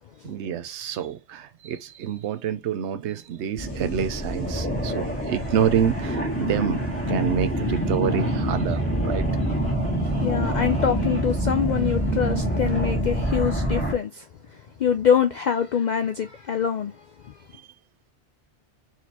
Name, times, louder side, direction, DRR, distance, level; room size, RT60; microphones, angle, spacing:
voice 1, 0.2-6.8 7.1-9.3, right 8 dB, 85° right, 0.9 m, -27 dB
sound 1, 3.6-13.9, right 1 dB, 10° left, 1.9 m, -26 dB
voice 2, 10.2-14.3 14.5-17.3, left 8 dB, 60° left, 0.5 m, -25 dB
4.5 x 4.1 x 2.8 m
omnidirectional pair, 1.1 m